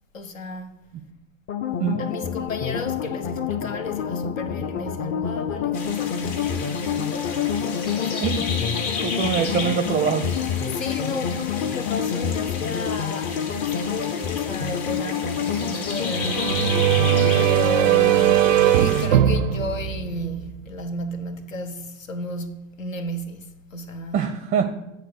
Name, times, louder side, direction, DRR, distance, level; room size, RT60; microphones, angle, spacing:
voice 1, 0.1-0.8 1.7-8.4 10.6-16.7 17.4-24.3, left 2 dB, 85° left, 0.9 m, -33 dB
sound 1, 1.5-17.5, left 7 dB, 30° left, 0.6 m, -27 dB
voice 2, 1.8-2.2 8.2-8.5 9.0-10.3 24.1-24.8, right 7 dB, 20° right, 0.4 m, -24 dB
sound 2, 5.7-19.1, left 5 dB, 55° left, 1.7 m, -34 dB
sound 3, 16.0-20.8, right 11 dB, 85° right, 0.5 m, -20 dB
8.2 x 3.6 x 6.7 m
hypercardioid pair, 90°, 38 cm